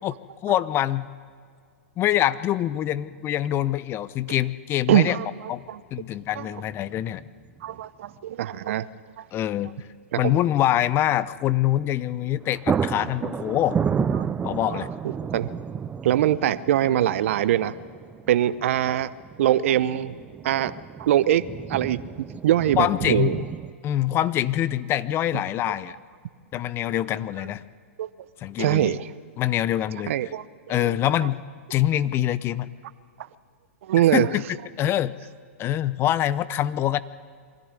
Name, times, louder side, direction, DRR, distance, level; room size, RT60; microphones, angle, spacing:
voice 1, 0.4-1.1 2.0-5.2 5.5-5.6 5.9-7.2 9.3-9.7 10.2-13.8 14.4-14.9 22.8-23.3 23.8-26.0 26.5-27.6 28.4-29.0 29.4-30.1 30.7-31.4 31.7-32.7 34.1-34.4 34.8-35.1 35.6-37.0, left 12 dB, 30° left, 16 dB, 0.8 m, -24 dB
voice 2, 4.9-5.3 5.7-5.8 6.4-6.5 7.6-8.9 10.1-10.4 14.1-14.3 14.6-14.9 15.3-15.5 16.0-17.8 18.3-19.1 19.4-20.2 20.4-23.4 28.0-28.1 28.6-29.1 30.1-30.8 33.8-34.3, right 12 dB, 60° right, 17 dB, 0.8 m, -23 dB
MS Thunderclap Davos Laret, 5.7-5.8 7.4-7.8 8.1-8.2 11.9-12.1 12.3-23.7, right 6 dB, 15° right, 0.6 m, -31 dB
24.0 x 15.0 x 9.8 m, 2.1 s
hypercardioid pair, 115°, 8 cm